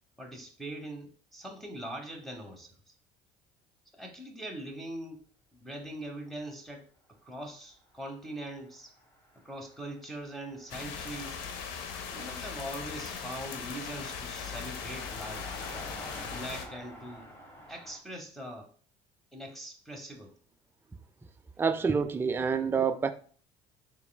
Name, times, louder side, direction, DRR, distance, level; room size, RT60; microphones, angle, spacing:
voice 1, 0.2-2.9 3.9-5.2 5.5-6.9 7.2-8.9 9.4-11.4 12.1-15.5 16.2-17.3 17.7-18.7 19.3-20.3, right 1 dB, ahead, 0.8 m, -42 dB
Car passing by, 7.9-18.0, equal, 15° left, 1.2 m, -49 dB
sound 1, 10.7-16.7, left 6 dB, 80° left, 0.6 m, -39 dB
voice 2, 21.6-23.1, right 5 dB, 15° right, 0.3 m, -27 dB
4.7 x 3.3 x 2.2 m
supercardioid pair, 85°, 16 cm